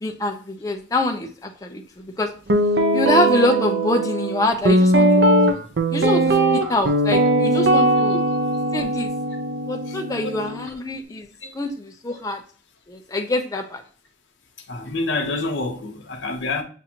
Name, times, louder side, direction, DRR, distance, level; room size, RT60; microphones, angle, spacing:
voice 1, 0.0-2.3 2.9-5.3 5.9-8.2 8.7-9.1 9.7-11.3 11.5-12.4 12.9-13.8, left 2 dB, 20° left, 0.5 m, -25 dB
Guitar, 2.5-10.7, right 1 dB, 65° right, 0.6 m, -19 dB
voice 2, 9.9-10.3 11.4-11.5 12.1-12.2 14.7-16.6, left 3 dB, 85° left, 0.9 m, -28 dB
7.0 x 2.6 x 2.8 m
head